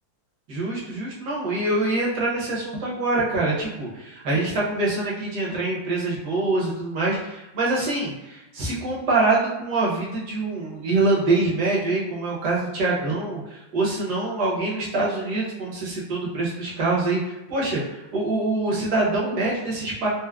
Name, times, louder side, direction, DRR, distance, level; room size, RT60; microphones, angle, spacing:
voice 1, 0.5-20.1, right 2 dB, 60° right, -5 dB, 1.2 m, -25 dB
4.5 x 2.0 x 2.2 m, 1.0 s
omnidirectional pair, 2.3 m